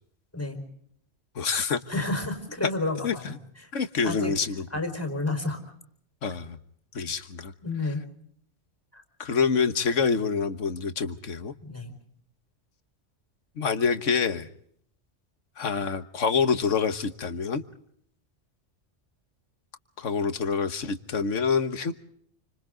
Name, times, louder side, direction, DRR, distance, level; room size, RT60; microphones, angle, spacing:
voice 1, 1.3-1.8 3.0-3.4 3.7-4.6 6.2-6.6 6.9-7.5 9.2-11.5 13.6-14.5 15.6-17.6 20.0-21.9, left 5 dB, 85° left, 10 dB, 1.6 m, -26 dB
voice 2, 1.9-4.3 4.7-5.6 7.6-8.0 8.9-9.0 11.6-11.9, left 2 dB, 10° left, 5 dB, 4.5 m, -31 dB
29.5 x 25.5 x 3.8 m, 0.68 s
omnidirectional pair, 1.2 m